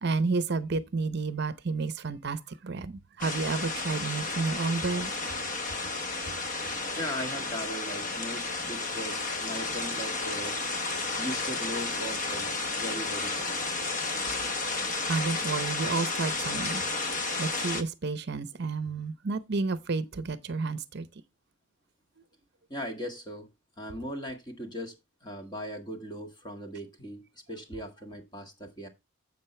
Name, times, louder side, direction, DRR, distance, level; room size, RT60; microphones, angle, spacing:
voice 1, 0.0-5.1 15.1-16.8 17.1-21.1, right 4 dB, 55° right, 0.7 m, -31 dB
sound 1, 3.2-17.8, left 3 dB, 40° left, 0.9 m, -32 dB
voice 2, 7.0-10.6 11.2-13.8 22.7-23.5 23.8-24.9 25.2-28.9, equal, 20° left, 1.8 m, -38 dB
10.5 x 7.5 x 3.2 m
head